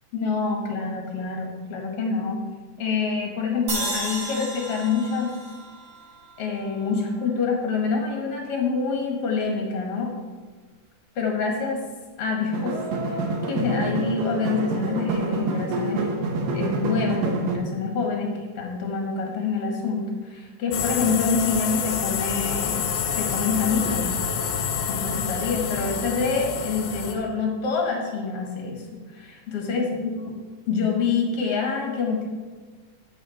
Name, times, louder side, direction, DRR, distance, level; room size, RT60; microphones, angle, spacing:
voice 1, 0.1-2.4 2.8-5.3 6.4-10.1 11.2-11.8 12.2-12.8 13.1-13.2 13.5-16.1 16.5-22.8 23.1-24.1 24.9-30.2 30.7-32.3, left 4 dB, 50° left, 1 dB, 2.2 m, -26 dB
sound 1, 3.7-6.9, right 2 dB, 45° right, 1.9 m, -33 dB
sound 2, 12.5-17.6, right 3 dB, 75° right, 2.6 m, -27 dB
sound 3, 20.7-27.1, left 7 dB, 70° left, 2.1 m, -27 dB
9.0 x 8.4 x 4.3 m, 1.4 s
omnidirectional pair, 3.9 m